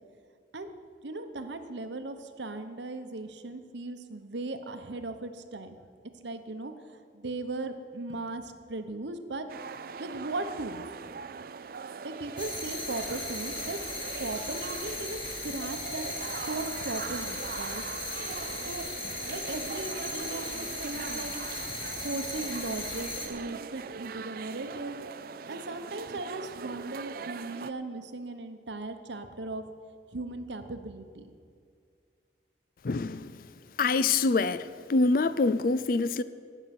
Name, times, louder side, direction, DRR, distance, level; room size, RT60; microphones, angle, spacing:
voice 1, 1.0-5.7 6.2-9.5 10.0-10.8 12.0-13.8 14.2-17.8 18.7-18.9 19.3-25.0 25.5-29.6 30.1-31.3, right 2 dB, 80° right, 1.0 m, -38 dB
sound 1, 9.5-27.7, right 5 dB, 55° right, 0.4 m, -41 dB
sound 2, 12.4-23.3, left 2 dB, 30° left, 1.9 m, -37 dB
voice 2, 32.8-33.3 33.8-36.2, left 3 dB, 50° left, 0.4 m, -25 dB
18.5 x 6.8 x 6.0 m
head